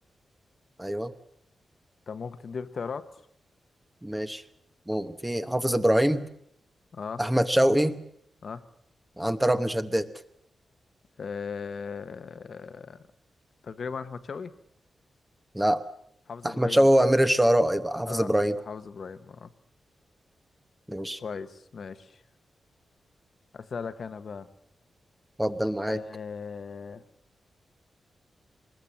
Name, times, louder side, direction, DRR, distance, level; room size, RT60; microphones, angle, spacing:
voice 1, 0.8-1.1 4.0-4.4 4.9-6.3 7.2-8.0 9.2-10.1 15.5-15.8 16.4-18.6 20.9-21.2 25.4-26.0, right 1 dB, 5° right, 9 dB, 1.0 m, -24 dB
voice 2, 2.1-3.1 6.9-7.2 8.4-8.6 11.2-13.0 13.6-14.5 16.3-16.9 18.0-18.3 18.7-19.5 21.2-22.2 23.5-24.5 25.9-27.0, left 5 dB, 50° left, 11 dB, 1.0 m, -37 dB
23.0 x 21.0 x 7.4 m, 0.70 s
wide cardioid pair, 170°, 0 cm